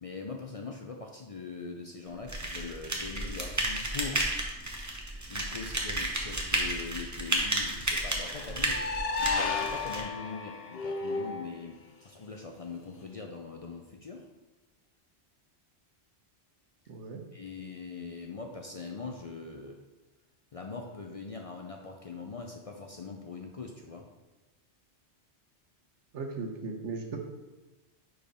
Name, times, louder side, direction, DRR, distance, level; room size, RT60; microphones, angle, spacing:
voice 1, 0.0-4.3 5.3-8.9 9.2-14.3 17.3-19.8 20.5-24.1, left 4 dB, 45° left, 2 dB, 0.5 m, -42 dB
sound 1, 2.3-10.0, right 1 dB, 15° right, 0.8 m, -32 dB
sound 2, 8.3-11.5, left 4 dB, 60° left, 0.9 m, -33 dB
voice 2, 16.9-17.2 26.1-27.2, right 4 dB, 90° right, 3 dB, 1.3 m, -37 dB
5.0 x 4.7 x 5.0 m, 1.1 s
omnidirectional pair, 1.2 m